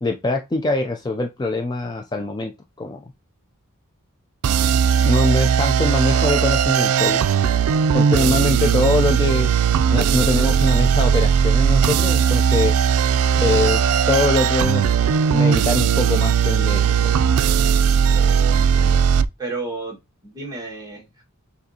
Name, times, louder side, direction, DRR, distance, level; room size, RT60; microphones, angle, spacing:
voice 1, 0.0-2.5 2.8-3.1 5.0-7.2 7.9-9.5 9.9-12.7 13.4-13.8 14.1-14.8 15.3-17.2, left 2 dB, 20° left, 4 dB, 0.4 m, -23 dB
sound 1, 4.4-19.2, right 7 dB, 90° right, 0.3 m, -18 dB
voice 2, 18.1-19.0 19.4-20.0 20.2-21.2, right 3 dB, 15° right, -2 dB, 1.6 m, -33 dB
6.4 x 2.6 x 2.8 m, 0.22 s
head